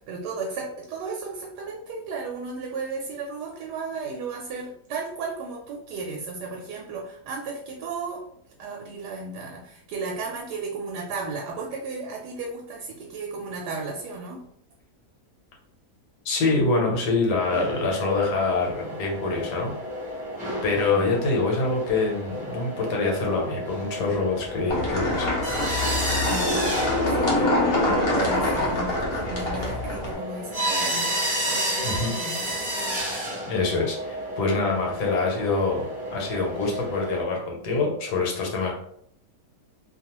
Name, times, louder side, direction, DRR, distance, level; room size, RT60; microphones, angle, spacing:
voice 1, 0.1-8.3 8.6-14.4 20.8-21.1 26.2-27.5 28.1-31.2 31.5-32.4 34.6-34.8, right 4 dB, 85° right, -1 dB, 1.2 m, -34 dB
voice 2, 16.2-19.7 20.6-25.3 31.8-32.1 33.0-33.2 33.5-38.7, left 3 dB, 80° left, -1 dB, 1.3 m, -25 dB
sound 1, 17.4-37.2, equal, 10° right, 0.5 m, -32 dB
sound 2, 24.7-30.2, left 1 dB, 45° left, 0.9 m, -25 dB
2.8 x 2.3 x 2.9 m, 0.68 s
omnidirectional pair, 1.7 m